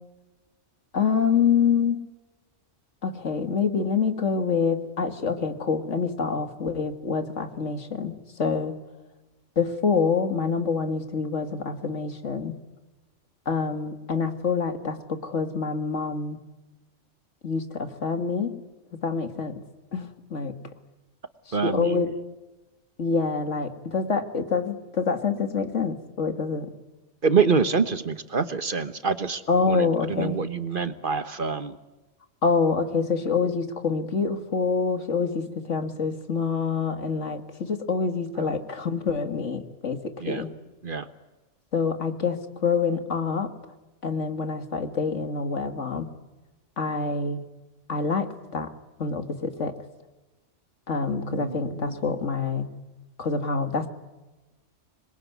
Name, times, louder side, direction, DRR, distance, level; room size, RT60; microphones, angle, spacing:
voice 1, 0.9-2.0 3.0-8.8 9.6-12.6 13.5-16.4 17.4-18.6 18.9-19.6 19.9-20.5 21.6-22.1 23.0-26.7 29.5-30.4 32.4-40.5 41.7-43.5 44.0-46.1 46.8-47.5 47.9-48.7 49.0-49.8 50.9-52.7 53.2-53.9, left 5 dB, 75° left, 8 dB, 2.3 m, -26 dB
voice 2, 21.5-22.2 27.2-31.8 38.4-38.5 40.2-40.4 40.8-41.1 51.3-52.0, right 5 dB, 45° right, 12 dB, 1.3 m, -26 dB
26.0 x 22.0 x 9.5 m, 1.1 s
omnidirectional pair, 1.2 m